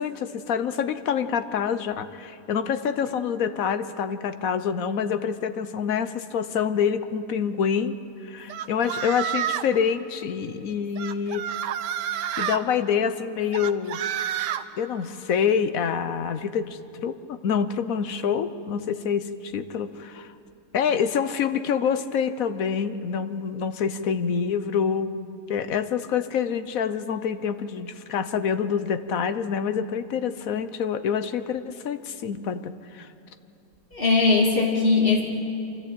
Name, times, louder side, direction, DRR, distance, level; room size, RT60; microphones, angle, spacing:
voice 1, 0.0-8.0 8.2-11.5 12.1-14.0 14.8-20.3 20.7-25.2 25.5-33.1, left 7 dB, 60° left, 11 dB, 1.2 m, -26 dB
sound 1, 8.5-9.8 11.0-12.6 13.5-14.6, right 10 dB, 85° right, 1.4 m, -29 dB
voice 2, 33.9-35.2, left 3 dB, 30° left, -1 dB, 3.0 m, -20 dB
25.0 x 14.0 x 8.6 m, 2.9 s
omnidirectional pair, 1.8 m